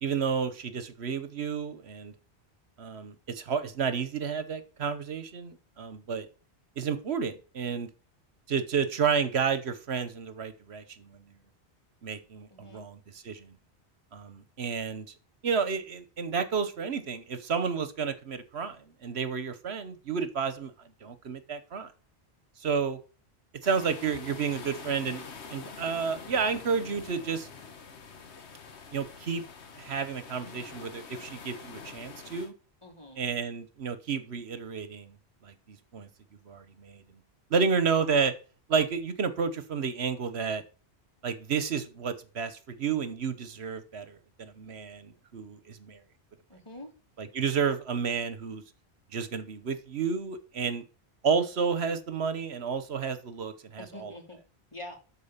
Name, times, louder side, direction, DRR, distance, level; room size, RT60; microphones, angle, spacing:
voice 1, 0.0-2.1 2.8-6.3 6.8-7.9 8.5-11.3 12.0-13.5 14.1-15.1 15.4-20.7 21.0-21.9 22.6-23.0 23.6-25.2 25.5-27.5 28.9-29.4 29.8-32.5 33.2-35.1 35.4-36.1 36.5-37.0 37.5-38.3 38.7-40.6 41.2-46.0 47.2-48.6 49.1-50.8 51.2-54.1, right 6 dB, 75° right, 12 dB, 1.3 m, -31 dB
voice 2, 12.5-12.9 32.8-33.2 46.5-46.9 53.8-54.4 54.7-54.9, left 1 dB, 25° left, 1 dB, 2.6 m, -45 dB
sound 1, 23.6-32.5, left 5 dB, 85° left, 1.5 m, -45 dB
13.0 x 4.7 x 6.7 m, 0.36 s
omnidirectional pair, 1.1 m